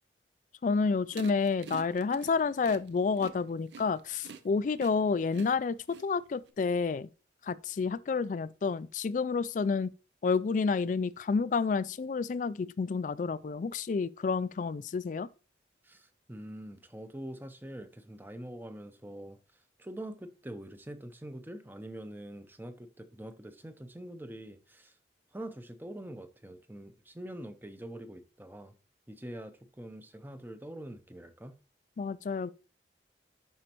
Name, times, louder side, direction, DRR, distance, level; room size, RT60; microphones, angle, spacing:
voice 1, 0.6-7.1 7.4-9.9 10.2-15.3 32.0-32.5, left 4 dB, 45° left, 0.3 m, -30 dB
sound 1, 1.1-6.5, right 5 dB, 80° right, 0.6 m, -47 dB
voice 2, 15.8-25.0 25.3-28.7 29.1-31.5, right 1 dB, 10° right, 0.6 m, -44 dB
11.0 x 4.3 x 3.0 m
head